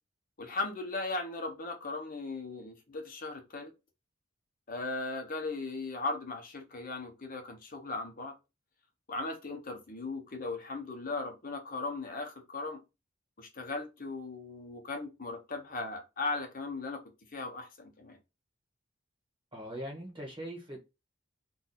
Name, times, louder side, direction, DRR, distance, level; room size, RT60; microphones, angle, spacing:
voice 1, 0.4-3.7 4.7-8.3 9.1-12.8 13.4-17.0 17.3-18.2, left 3 dB, 45° left, 0.8 m, -37 dB
voice 2, 19.5-20.8, equal, 25° right, 1.3 m, -41 dB
2.6 x 2.3 x 4.1 m
head